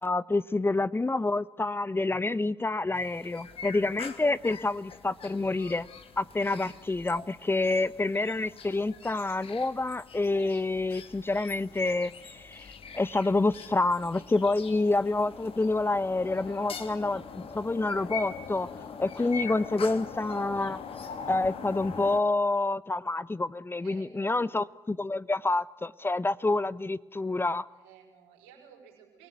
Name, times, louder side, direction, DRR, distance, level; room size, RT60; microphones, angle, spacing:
voice 1, 0.0-5.9 6.2-12.7 12.9-18.7 19.0-20.8 21.3-27.7, left 2 dB, 20° left, 0.8 m, -28 dB
sound 1, 2.9-22.2, left 6 dB, 55° left, 2.5 m, -43 dB
voice 2, 6.4-7.0 7.7-7.9 23.8-24.5 27.7-29.3, right 8 dB, 85° right, 6.3 m, -56 dB
27.5 x 19.0 x 9.5 m
hypercardioid pair, 50°, 12 cm